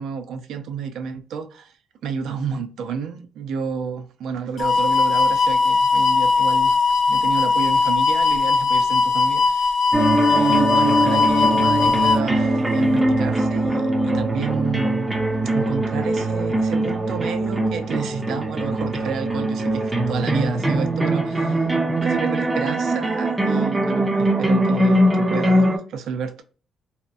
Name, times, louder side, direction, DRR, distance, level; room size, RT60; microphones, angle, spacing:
voice 1, 0.0-1.7 2.0-6.8 7.1-9.8 10.3-15.1 15.5-21.7 21.9-26.4, right 6 dB, 80° right, 0.4 m, -30 dB
sound 1, 4.6-12.2, left 4 dB, 55° left, 0.3 m, -19 dB
sound 2, 9.9-25.8, right 1 dB, 15° right, 0.6 m, -21 dB
2.8 x 2.1 x 2.4 m
cardioid pair, 90°, 0 cm